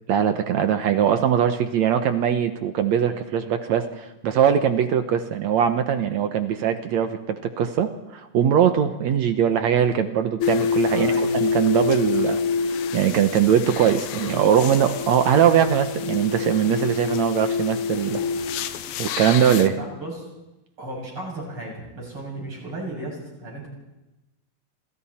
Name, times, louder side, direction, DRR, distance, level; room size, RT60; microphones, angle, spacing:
voice 1, 0.1-11.1 11.4-12.4 12.9-18.2 19.0-19.8, right 8 dB, 70° right, 8 dB, 1.8 m, -21 dB
sound 1, 10.4-19.7, left 5 dB, 85° left, 3.0 m, -26 dB
voice 2, 10.9-11.5 19.8-20.3 20.8-23.7, right 1 dB, 35° right, -1 dB, 8.0 m, -35 dB
28.0 x 27.0 x 4.3 m, 0.99 s
omnidirectional pair, 4.3 m